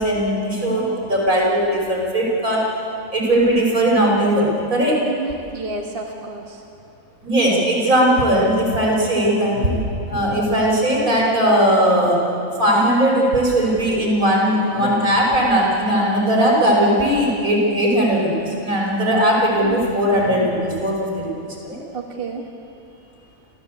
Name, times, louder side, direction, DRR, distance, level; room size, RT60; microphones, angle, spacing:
voice 1, 0.0-2.6 3.1-5.0 7.2-12.2 12.6-21.8, equal, 80° right, -3 dB, 6.3 m, -18 dB
voice 2, 5.1-6.6 19.6-19.8 21.9-22.7 23.0-23.1, right 3 dB, 40° right, 1 dB, 1.7 m, -31 dB
29.5 x 14.5 x 8.5 m, 2.6 s
omnidirectional pair, 1.5 m